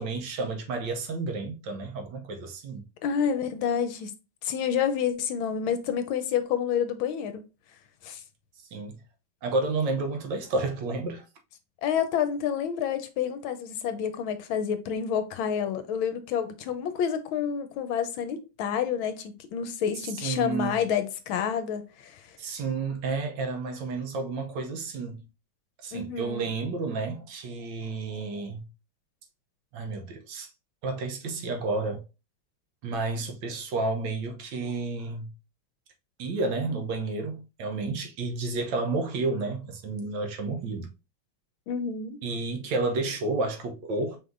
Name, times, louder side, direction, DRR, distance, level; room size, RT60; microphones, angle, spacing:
voice 1, 0.0-2.8 8.7-9.0 9.4-11.2 20.0-20.8 22.4-25.2 25.8-28.7 29.7-30.5 30.8-32.0 32.8-35.3 36.2-40.9 42.2-44.2, right 3 dB, 70° right, 1.3 m, -31 dB
voice 2, 3.0-4.1 4.4-7.4 8.0-8.2 11.8-22.2 25.9-26.5 41.7-42.2, left 8 dB, 80° left, 1.4 m, -29 dB
4.9 x 3.5 x 2.5 m
omnidirectional pair, 2.2 m